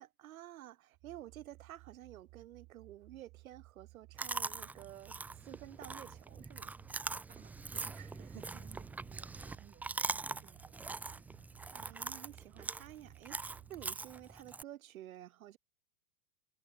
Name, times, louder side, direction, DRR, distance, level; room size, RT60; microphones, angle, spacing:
voice 1, 0.0-6.7 8.0-8.1 8.3-8.4 9.4-9.6 11.7-15.6, right 13 dB, 80° right, 4.2 m, -52 dB
sound 1, 0.9-14.0, right 24 dB, 40° right, 5.3 m, -59 dB
Chewing mastication, 4.2-14.6, right 3 dB, 5° right, 0.4 m, -42 dB
voice 2, 7.3-11.5, right 10 dB, 20° right, 4.3 m, -62 dB
supercardioid pair, 145°, 42 cm